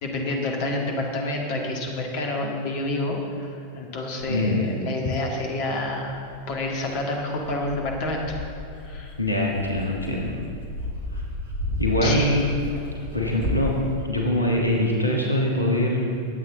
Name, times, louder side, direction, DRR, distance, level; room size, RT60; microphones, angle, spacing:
voice 1, 0.0-3.5 3.7-6.2 6.5-8.4 8.8-9.1 12.0-12.3, left 2 dB, 45° left, 1 dB, 1.9 m, -28 dB
Dog, 4.2-4.3 5.1-5.2 6.1-14.0, left 1 dB, 65° right, 2.2 m, -33 dB
voice 2, 4.3-4.7 9.2-10.4 11.8-12.5 13.1-13.7 14.0-16.2, left 1 dB, 85° left, -1 dB, 1.5 m, -23 dB
21.0 x 8.3 x 3.9 m, 2.6 s
figure-of-eight pair, 90°, 0 cm